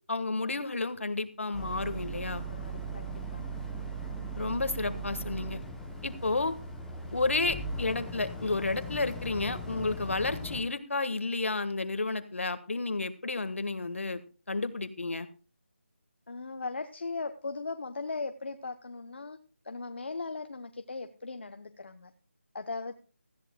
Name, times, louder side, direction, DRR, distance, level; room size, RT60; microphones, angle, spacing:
voice 1, 0.1-2.4 4.4-5.6 6.0-6.5 7.1-14.2 14.5-15.3, left 3 dB, 70° left, 11 dB, 1.5 m, -31 dB
Boat Water vehicle, 1.5-10.6, right 2 dB, ahead, 0.7 m, -39 dB
voice 2, 2.5-3.5 9.7-9.9 16.3-19.4 19.6-22.1 22.5-22.9, left 3 dB, 55° left, 7 dB, 0.9 m, -38 dB
18.5 x 14.0 x 2.2 m, 0.35 s
figure-of-eight pair, 170°, 7 cm